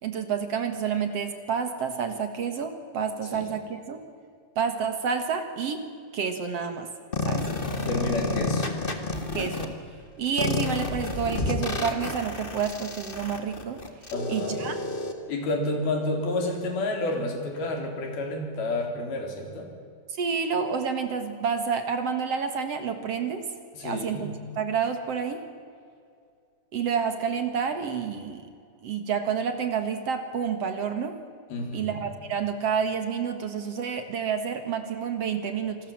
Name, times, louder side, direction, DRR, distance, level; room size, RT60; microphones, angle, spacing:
voice 1, 0.0-4.0 4.6-5.8 6.1-6.9 7.2-7.4 9.3-9.7 10.2-13.8 14.3-14.8 20.2-23.4 23.8-25.4 26.7-28.5 28.8-31.2 31.7-35.8, right 6 dB, 55° right, 8 dB, 2.0 m, -29 dB
sound 1, 7.1-9.6 10.4-15.1, left 3 dB, 85° left, 0.4 m, -30 dB
voice 2, 7.9-8.7 14.1-14.7 15.3-19.7 23.7-24.4 31.5-32.0, left 2 dB, 70° left, 3 dB, 5.7 m, -30 dB
27.5 x 20.0 x 7.5 m, 2.4 s
omnidirectional pair, 4.5 m